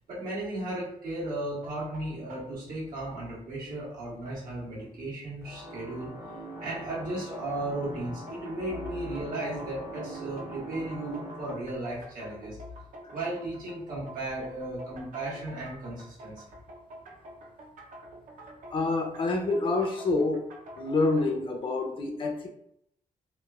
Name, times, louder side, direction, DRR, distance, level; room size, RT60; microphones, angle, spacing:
voice 1, 0.1-6.1 6.6-12.6 13.1-16.4, right 1 dB, 85° right, -6 dB, 1.3 m, -35 dB
sound 1, 1.6-2.5 3.7-3.8 4.3-4.4 5.0-5.1 7.3-7.8 8.3-21.3, right 1 dB, 70° right, 0.6 m, -48 dB
sound 2, 5.4-11.5, right 1 dB, 20° right, 0.4 m, -42 dB
voice 2, 18.7-20.5 20.8-22.5, left 3 dB, 40° left, 3 dB, 0.4 m, -27 dB
3.0 x 2.3 x 2.2 m, 0.73 s
wide cardioid pair, 155°, 14 cm